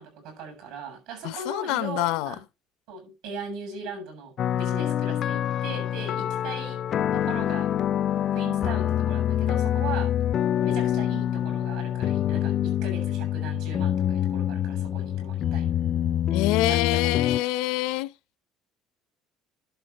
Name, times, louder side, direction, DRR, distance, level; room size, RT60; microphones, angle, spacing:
voice 1, 0.0-2.4 2.9-6.8 7.1-7.7 8.3-10.1 10.6-15.7 16.7-17.4, right 4 dB, 75° right, 7.2 m, -39 dB
voice 2, 1.2-2.4 16.3-18.1, left 17 dB, 80° left, 0.6 m, -26 dB
sound 1, 4.4-17.4, left 10 dB, 35° left, 0.4 m, -26 dB
11.0 x 7.0 x 4.1 m
cardioid pair, 170°, 0 cm